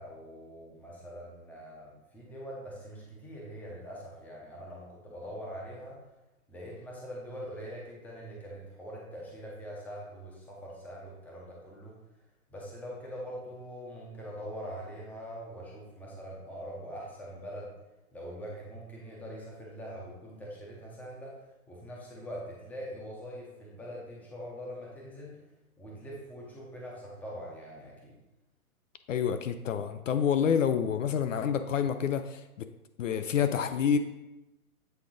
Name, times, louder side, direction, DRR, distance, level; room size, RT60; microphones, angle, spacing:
voice 1, 0.0-6.0 6.5-12.0 12.5-17.7 18.1-21.4 21.7-25.4 25.8-28.2, equal, 5° left, -3 dB, 0.7 m, -43 dB
voice 2, 29.1-32.7 33.0-34.0, left 7 dB, 60° left, 9 dB, 0.5 m, -28 dB
8.1 x 3.6 x 3.7 m, 0.99 s
hypercardioid pair, 135°, 45 cm